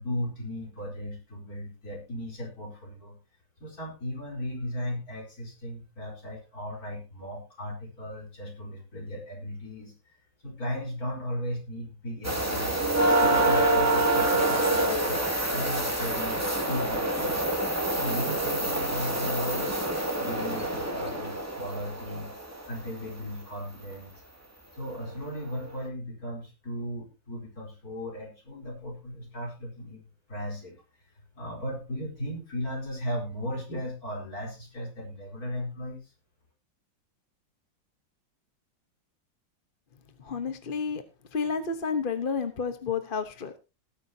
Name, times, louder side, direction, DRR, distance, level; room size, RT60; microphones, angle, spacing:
voice 1, 0.0-3.2 3.6-9.9 10.4-15.2 15.5-17.4 17.9-19.7 20.2-24.1 24.7-30.0 30.3-30.7 31.3-36.0, equal, 50° left, 1 dB, 5.1 m, -36 dB
sound 1, 12.2-22.9 24.9-25.0 25.5-25.7, right 1 dB, 10° right, 2.2 m, -26 dB
voice 2, 40.2-41.0 41.3-43.6, left 5 dB, 35° left, 9 dB, 1.0 m, -30 dB
18.5 x 9.9 x 2.8 m, 0.28 s
omnidirectional pair, 2.0 m